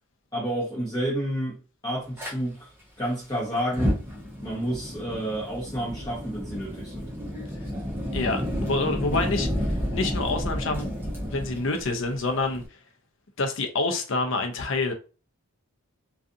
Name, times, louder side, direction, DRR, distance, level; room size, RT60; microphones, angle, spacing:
voice 1, 0.3-1.6 1.8-2.7 3.0-4.0 4.4-7.1, right 1 dB, 20° left, 0.8 m, -30 dB
Fire, 2.2-2.3 3.6-12.7, equal, 10° right, 0.5 m, -31 dB
voice 2, 8.1-11.0 11.3-12.6 13.4-14.9, left 3 dB, 55° left, 0.5 m, -27 dB
2.5 x 2.4 x 2.5 m
head